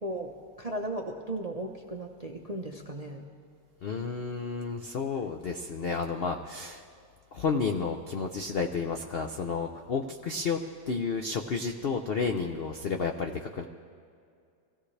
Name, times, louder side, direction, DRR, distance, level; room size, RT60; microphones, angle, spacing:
voice 1, 0.0-3.2, right 1 dB, 45° right, 2 dB, 0.5 m, -36 dB
voice 2, 3.8-6.8 7.3-10.6 10.9-13.6, left 5 dB, 85° left, 4 dB, 0.5 m, -31 dB
24.0 x 16.0 x 3.3 m, 2.3 s
omnidirectional pair, 2.0 m